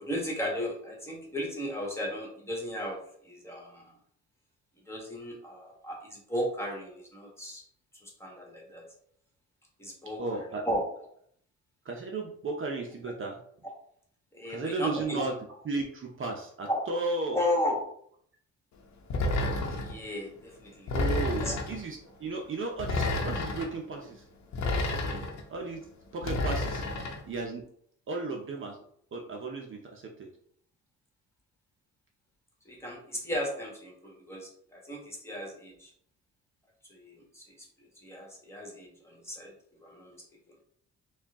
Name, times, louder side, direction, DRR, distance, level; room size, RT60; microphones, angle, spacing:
voice 1, 0.0-3.9 4.9-7.6 8.0-8.8 9.8-10.8 13.6-13.7 14.3-15.3 16.7-16.8 17.3-17.8 19.7-20.9 21.2-21.5 24.9-25.3 32.6-35.9 36.8-37.7 38.0-39.5 39.8-40.5, left 1 dB, 10° left, -2 dB, 1.5 m, -35 dB
voice 2, 10.2-10.6 11.8-13.4 14.5-15.3 15.6-17.4 20.9-24.2 25.5-25.8 26.1-26.8 27.3-27.6 28.1-28.8 29.1-30.3, right 3 dB, 45° right, 1 dB, 0.7 m, -34 dB
sound 1, 19.1-20.0 20.9-21.8 22.8-23.7 24.5-25.4 26.2-27.2, left 2 dB, 65° left, 0.9 m, -30 dB
4.3 x 2.3 x 3.6 m, 0.64 s
cardioid pair, 90°, 30 cm